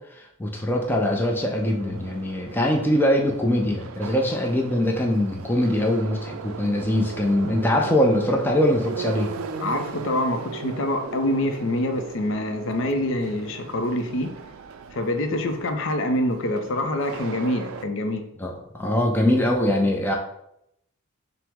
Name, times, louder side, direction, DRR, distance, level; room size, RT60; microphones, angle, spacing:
voice 1, 0.1-9.3 18.4-20.1, left 1 dB, 10° left, 0 dB, 0.4 m, -22 dB
Subway metro underground, 0.8-17.8, right 5 dB, 75° right, 0.3 m, -38 dB
voice 2, 9.6-14.3 14.9-18.3, left 1 dB, 60° left, 6 dB, 0.5 m, -26 dB
5.7 x 2.0 x 3.5 m, 0.78 s
head